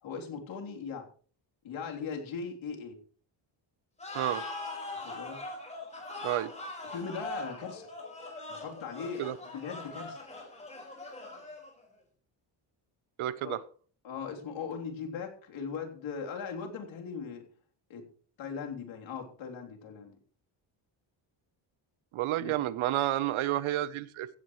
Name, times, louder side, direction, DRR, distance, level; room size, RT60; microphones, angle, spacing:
voice 1, 0.0-1.1 1.6-3.0 5.0-5.4 6.8-7.9 8.5-10.2 13.4-13.6 14.0-17.5 17.9-18.1 18.4-20.2 22.4-22.5, left 6 dB, 75° left, 1 dB, 3.5 m, -39 dB
sound 1, 4.0-11.8, left 2 dB, 15° left, 5.0 m, -41 dB
voice 2, 13.2-13.6 22.1-24.3, right 14 dB, 90° right, 16 dB, 1.0 m, -30 dB
16.0 x 16.0 x 3.2 m, 0.42 s
cardioid pair, 180°, 47 cm